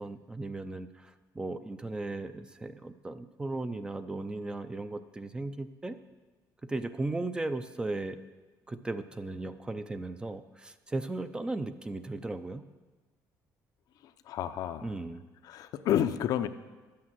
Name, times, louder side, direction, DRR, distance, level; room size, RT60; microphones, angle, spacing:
voice 1, 0.0-6.0 6.6-8.2 8.7-12.6 14.8-15.2, right 2 dB, 10° right, 10 dB, 0.5 m, -36 dB
voice 2, 14.3-14.9 15.4-16.5, left 10 dB, 65° left, 10 dB, 0.6 m, -30 dB
11.0 x 8.6 x 7.6 m, 1.2 s
cardioid pair, 140°, 7 cm